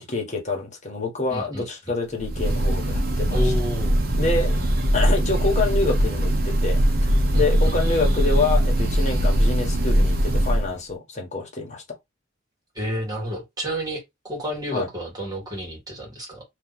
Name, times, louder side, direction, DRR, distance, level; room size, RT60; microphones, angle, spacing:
voice 1, 0.0-3.5 4.2-4.6 4.9-11.8 14.7-14.9, left 3 dB, 35° left, 1.3 m, -27 dB
voice 2, 1.3-1.7 3.3-3.9 7.3-7.8 12.8-16.4, equal, 20° right, 1.8 m, -30 dB
Breathing / Bird, 2.2-10.7, right 1 dB, 50° right, 0.9 m, -21 dB
3.0 x 2.7 x 4.0 m
head